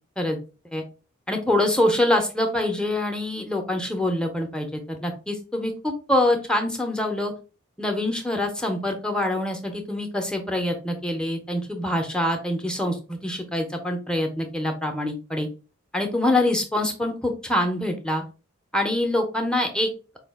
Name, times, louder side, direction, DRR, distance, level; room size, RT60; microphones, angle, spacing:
voice 1, 1.3-7.3 7.8-15.5 15.9-18.2 18.7-19.9, left 1 dB, 5° left, 4 dB, 0.6 m, -25 dB
4.7 x 2.3 x 3.5 m, 0.34 s
head